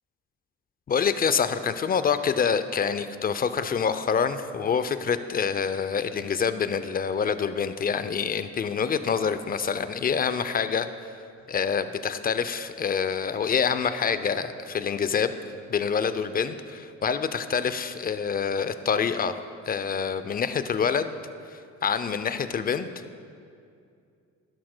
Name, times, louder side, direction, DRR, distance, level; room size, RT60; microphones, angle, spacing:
voice 1, 0.9-11.1 11.5-15.3 15.7-19.4 19.7-21.1 21.5-23.2, left 6 dB, 30° left, 12 dB, 0.4 m, -26 dB
12.0 x 11.0 x 2.2 m, 2.4 s
cardioid pair, 90°, 30 cm